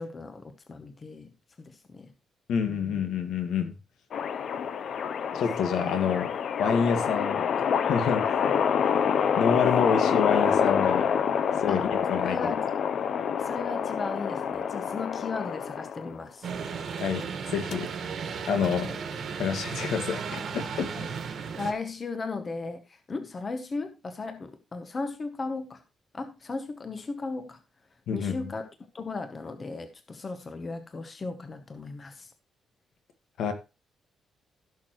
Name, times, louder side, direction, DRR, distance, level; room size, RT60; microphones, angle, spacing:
voice 1, 0.0-1.3 1.6-2.1 2.7-3.0 5.3-5.4 5.8-5.9 11.7-11.8 12.2-12.7 13.4-16.5 18.8-19.0 20.8-21.1 21.4-22.8 23.1-25.8 26.1-27.6 28.1-28.6 28.9-32.3, left 3 dB, 25° left, 0.9 m, -36 dB
voice 2, 2.5-3.7 5.3-6.3 6.6-7.4 7.9-8.3 9.4-11.1 11.6-12.6 17.0-17.9 18.5-18.9 19.4-20.9 28.1-28.5 33.4-33.5, left 6 dB, 75° left, 1.8 m, -28 dB
sound 1, 4.1-16.2 17.0-17.2 17.7-17.8, left 7 dB, 50° left, 0.6 m, -27 dB
sound 2, 16.4-21.7, right 6 dB, 50° right, 1.6 m, -35 dB
16.0 x 6.3 x 3.1 m
cardioid pair, 175°, 0 cm